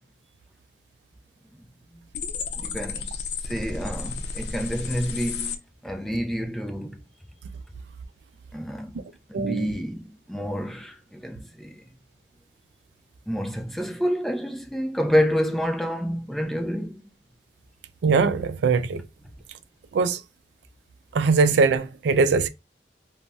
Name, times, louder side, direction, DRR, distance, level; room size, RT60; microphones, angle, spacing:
sound 1, 2.1-5.6, left 4 dB, 75° left, 0.5 m, -32 dB
voice 1, 2.5-3.1 3.4-5.6 5.8-7.0 8.5-9.0 9.3-11.8 13.3-17.0, equal, ahead, 0.3 m, -28 dB
voice 2, 9.3-9.7 18.0-19.0 19.9-20.2 21.1-22.5, right 4 dB, 75° right, 0.3 m, -21 dB
2.5 x 2.1 x 3.3 m
head